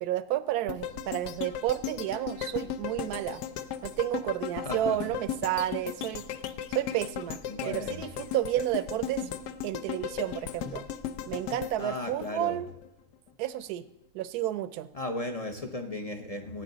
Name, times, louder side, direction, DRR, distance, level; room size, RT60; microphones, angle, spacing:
voice 1, 0.0-3.4 3.8-6.3 6.7-7.4 7.7-9.3 9.6-10.8 11.3-12.7 13.4-13.8 14.1-14.9, right 13 dB, 75° right, 14 dB, 1.1 m, -31 dB
sound 1, 0.7-12.9 13.3-13.4, left 9 dB, 80° left, 1.2 m, -36 dB
voice 2, 4.6-5.0 7.5-8.1 11.8-12.6 14.9-16.6, left 1 dB, 40° left, 6 dB, 0.5 m, -35 dB
17.5 x 8.8 x 3.9 m, 0.88 s
omnidirectional pair, 1.8 m